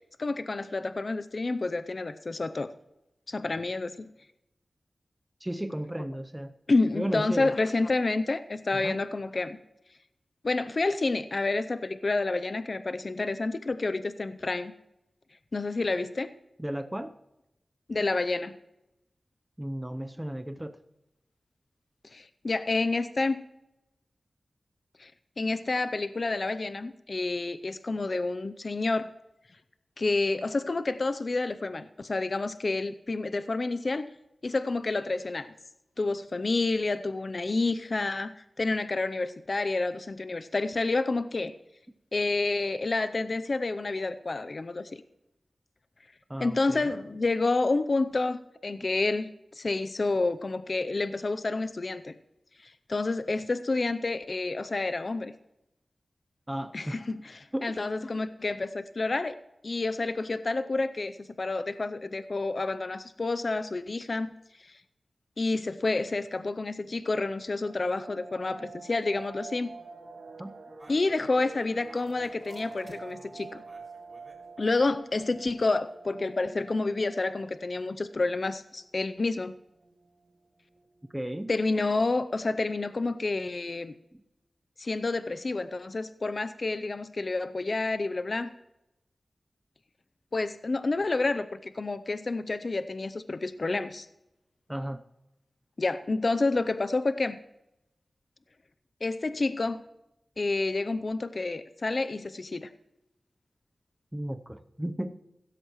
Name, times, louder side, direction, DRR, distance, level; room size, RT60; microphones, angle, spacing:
voice 1, 0.0-2.7 3.3-4.1 6.7-9.6 10.4-14.7 15.5-16.3 17.9-18.5 22.1-23.4 25.0-25.1 25.4-29.1 30.0-34.1 34.4-35.5 36.0-41.5 42.1-45.0 46.4-52.1 52.6-55.3 56.7-59.3 59.6-64.3 64.6-64.8 65.4-69.7 70.9-73.6 74.6-79.5 81.5-83.9 84.8-88.5 90.3-94.1 95.8-97.4 99.0-99.8 100.4-102.7, left 3 dB, 50° left, 12 dB, 0.5 m, -29 dB
voice 2, 5.4-6.5 7.0-7.5 8.7-9.0 16.6-17.1 19.6-20.8 46.3-46.9 56.5-57.0 57.5-57.7 70.4-70.5 81.1-81.5 84.1-84.2 94.7-95.0 104.1-105.2, right 1 dB, 10° right, 8 dB, 0.7 m, -34 dB
sound 1, 67.7-78.5 78.7-78.8 79.2-79.4 79.8-80.3 80.8-80.9 81.0-81.6 81.9-82.0, right 4 dB, 70° right, 1.8 m, -48 dB
sound 2, 70.8-74.4 75.2-75.9, right 1 dB, 35° right, 4.4 m, -55 dB
15.5 x 13.5 x 3.1 m, 0.90 s
wide cardioid pair, 75°, 0 cm